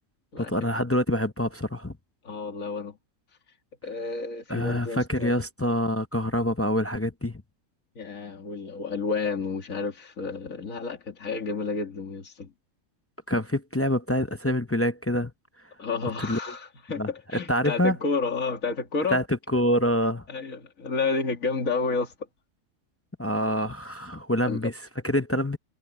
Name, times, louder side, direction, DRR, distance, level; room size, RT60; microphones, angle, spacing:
voice 1, 0.4-1.9 4.5-7.4 13.3-15.3 16.2-16.4 17.0-17.1 17.5-18.0 19.1-19.2 19.5-20.2 23.2-24.7 25.0-25.6, equal, 20° left, 0.3 m, -26 dB
voice 2, 2.2-3.0 3.8-5.3 8.0-12.5 15.8-19.2 20.3-22.1 24.5-24.7, left 4 dB, 70° left, 2.6 m, -30 dB
omnidirectional pair, 1.5 m